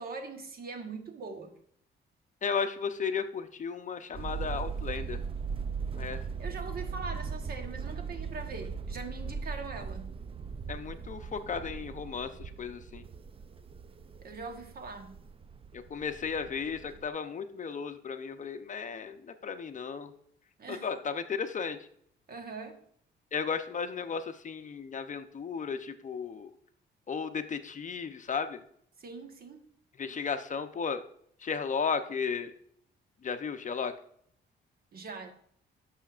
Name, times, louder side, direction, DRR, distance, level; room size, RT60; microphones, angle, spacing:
voice 1, 0.0-1.5 6.4-10.1 14.2-15.2 20.6-20.9 22.3-22.8 29.0-29.6 34.9-35.3, right 4 dB, 50° right, 1.3 m, -42 dB
voice 2, 2.4-5.2 6.0-6.2 10.7-13.0 15.7-20.1 20.7-21.8 23.3-26.5 27.1-28.6 30.0-31.0 31.4-32.5 33.2-33.9, left 6 dB, 40° left, 0.7 m, -34 dB
sound 1, 4.1-17.1, right 5 dB, 30° right, 0.4 m, -39 dB
11.5 x 6.4 x 2.5 m
cardioid pair, 90°, 20 cm